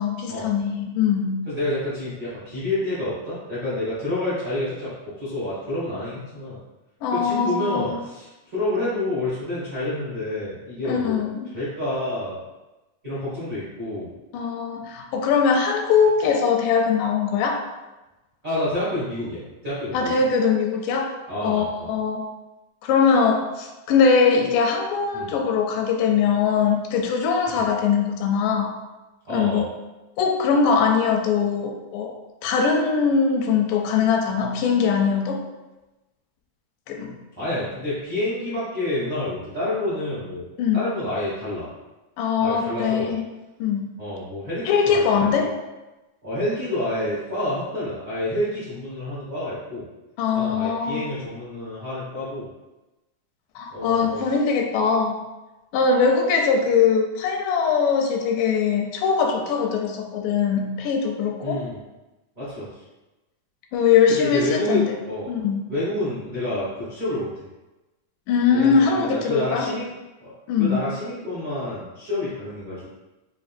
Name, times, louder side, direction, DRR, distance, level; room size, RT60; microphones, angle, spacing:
voice 1, 0.0-1.4 7.0-8.0 10.8-11.5 14.3-17.7 19.9-21.1 21.4-22.3 22.8-28.7 29.3-29.6 30.2-32.1 32.4-35.4 36.9-37.1 40.6-40.9 42.2-43.2 43.6-43.9 44.7-45.6 50.2-51.0 53.6-55.2 55.7-61.6 63.7-64.9 65.3-65.6 68.3-69.7 70.5-70.9, left 6 dB, 85° left, 2 dB, 2.1 m, -21 dB
voice 2, 1.4-4.9 5.2-6.6 7.1-11.2 11.5-12.4 13.0-14.1 18.4-20.2 21.3-21.9 25.1-25.3 27.5-27.6 29.2-29.6 37.4-40.5 40.7-41.7 42.4-43.1 44.0-45.0 45.3-45.4 46.2-49.8 50.3-52.5 53.7-54.2 61.4-61.8 62.3-62.7 64.1-65.3 65.7-67.3 68.5-69.9 70.2-72.9, left 1 dB, 65° right, -11 dB, 0.8 m, -28 dB
5.2 x 2.6 x 2.5 m, 1.1 s
omnidirectional pair, 3.7 m